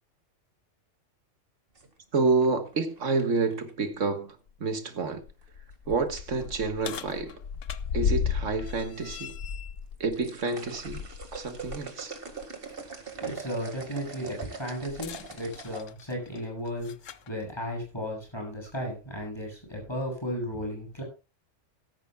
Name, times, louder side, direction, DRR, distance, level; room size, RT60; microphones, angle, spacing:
sound 1, 1.7-3.9 5.4-5.7 6.2-6.6 7.5-8.1 8.4-8.6 9.1-9.2 9.8-15.8, right 5 dB, 50° right, 2.1 m, -42 dB
voice 1, 2.1-5.2 5.9-7.3 7.9-9.3 10.0-11.1 11.3-12.2, right 4 dB, 80° right, 1.9 m, -28 dB
sound 2, 3.9-4.0 4.5-4.6 5.2-11.9 12.3-12.5 14.9-17.3 18.3-18.4 19.2-19.3, left 7 dB, 85° left, 1.2 m, -35 dB
voice 2, 13.2-16.9 17.3-21.0, equal, 20° left, 7.8 m, -34 dB
16.5 x 13.5 x 2.3 m
omnidirectional pair, 1.3 m